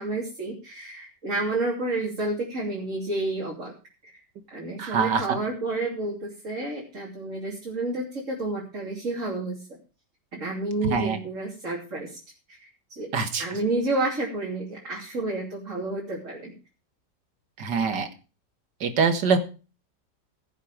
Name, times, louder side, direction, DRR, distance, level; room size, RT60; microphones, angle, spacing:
voice 1, 0.0-3.7 4.0-4.1 4.5-9.7 10.3-12.2 12.5-13.1 13.4-16.6, right 2 dB, 45° right, -3 dB, 3.4 m, -30 dB
voice 2, 4.8-5.2 10.8-11.2 13.1-13.4 17.6-18.1 18.8-19.4, right 5 dB, 70° right, 8 dB, 2.2 m, -24 dB
16.0 x 7.4 x 5.1 m, 0.33 s
omnidirectional pair, 1.9 m